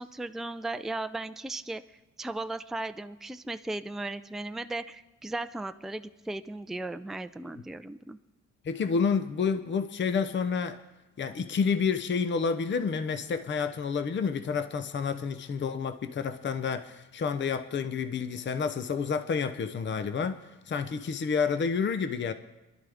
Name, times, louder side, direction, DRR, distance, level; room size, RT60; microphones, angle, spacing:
voice 1, 0.0-1.8 2.2-8.2, right 2 dB, ahead, 0.4 m, -36 dB
voice 2, 8.6-10.8 11.2-22.3, left 5 dB, 40° left, 0.8 m, -29 dB
23.5 x 11.5 x 3.5 m
cardioid pair, 90°, 30 cm